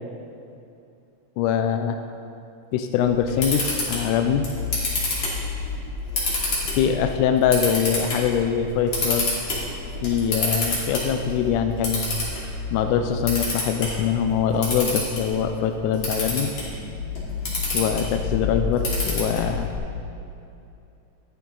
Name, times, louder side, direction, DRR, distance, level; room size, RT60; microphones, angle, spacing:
voice 1, 1.4-2.0 2.7-4.5 6.7-9.3 10.0-12.0 12.7-16.5 17.7-19.7, left 8 dB, 80° left, 6 dB, 2.0 m, -23 dB
Camera, 3.0-19.8, left 3 dB, 40° left, 3.1 m, -28 dB
12.5 x 11.0 x 3.8 m, 2.7 s
omnidirectional pair, 3.7 m